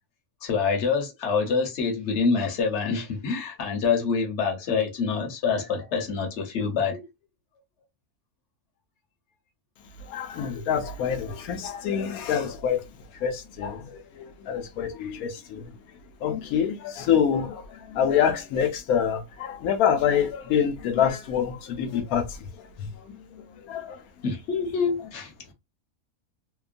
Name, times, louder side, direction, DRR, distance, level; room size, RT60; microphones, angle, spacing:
voice 1, 0.4-7.0 24.2-25.3, left 5 dB, 55° left, 1.0 m, -26 dB
voice 2, 10.1-12.8 13.2-15.7 16.2-22.3 22.8-22.9 23.7-24.0, left 8 dB, 75° left, 1.1 m, -26 dB
2.9 x 2.2 x 2.4 m
omnidirectional pair, 1.5 m